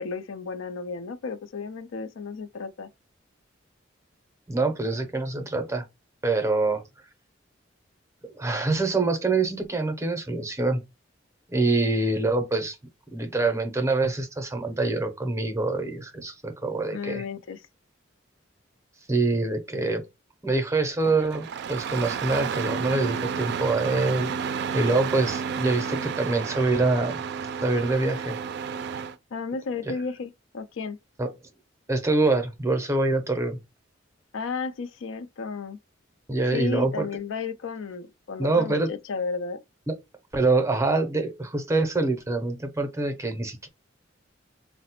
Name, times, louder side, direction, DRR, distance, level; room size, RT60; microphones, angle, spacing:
voice 1, 0.0-2.9 16.9-17.6 29.3-31.0 34.3-35.8 36.5-39.6, left 4 dB, 85° left, 0.4 m, -33 dB
voice 2, 4.5-5.9 6.2-6.8 8.2-10.8 11.5-12.8 13.1-17.2 19.1-20.0 20.4-27.2 27.6-28.4 29.9-30.0 31.2-31.3 31.9-33.6 36.3-37.1 38.4-38.9 39.9-40.0 40.3-43.7, right 3 dB, 15° right, 0.6 m, -25 dB
Engine starting, 21.0-29.2, right 6 dB, 60° right, 0.3 m, -31 dB
3.9 x 2.0 x 2.9 m
head